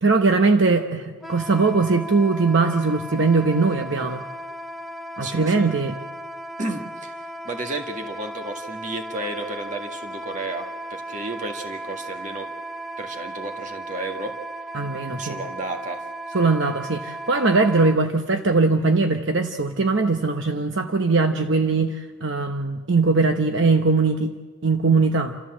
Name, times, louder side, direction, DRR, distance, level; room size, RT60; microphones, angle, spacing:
voice 1, 0.0-4.2 5.2-6.0 14.7-15.4 16.3-24.3 24.6-25.3, right 3 dB, 60° right, 5 dB, 0.9 m, -20 dB
Wind instrument woodwind instrument, 1.2-18.0, right 1 dB, ahead, 0.6 m, -36 dB
voice 2, 5.2-5.7 6.6-7.1 7.4-12.5 13.0-14.3 15.2-16.0, right 2 dB, 35° right, 3 dB, 1.8 m, -32 dB
29.0 x 14.0 x 7.5 m, 1.5 s
head